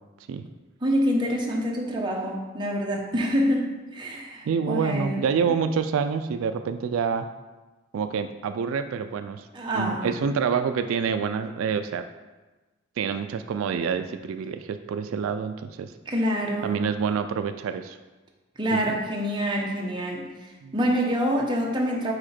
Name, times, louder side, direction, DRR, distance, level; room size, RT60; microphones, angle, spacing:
voice 1, 0.8-5.2 5.5-5.6 9.5-10.2 16.0-16.8 18.6-22.1, equal, 20° right, -1 dB, 0.8 m, -26 dB
voice 2, 4.5-7.3 7.9-9.5 9.7-12.1 13.0-15.9 16.6-18.0 18.7-18.8 20.6-20.7, right 6 dB, 85° right, 9 dB, 0.3 m, -27 dB
5.0 x 4.7 x 4.3 m, 1.2 s
head